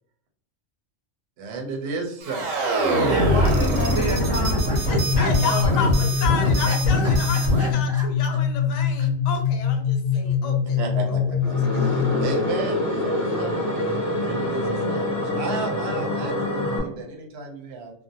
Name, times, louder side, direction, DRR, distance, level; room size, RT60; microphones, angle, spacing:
voice 1, 1.4-2.6 9.0-9.1 10.1-10.5 10.8-11.9 12.2-17.9, right 4 dB, 65° right, 2 dB, 0.8 m, -34 dB
sound 1, 2.2-7.7, equal, 90° right, 1.0 m, -22 dB
voice 2, 3.1-4.9 5.2-5.9 6.7-6.8 7.0-8.1, right 1 dB, 15° right, -5 dB, 0.7 m, -31 dB
voice 3, 4.9-11.4 11.7-12.0, left 5 dB, 80° left, 3 dB, 0.3 m, -32 dB
sound 2, 4.9-12.5, left 7 dB, 50° left, 0.8 m, -24 dB
sound 3, 11.4-16.8, left 1 dB, 15° left, 0.9 m, -26 dB
2.5 x 2.1 x 2.7 m, 0.66 s
omnidirectional pair, 1.3 m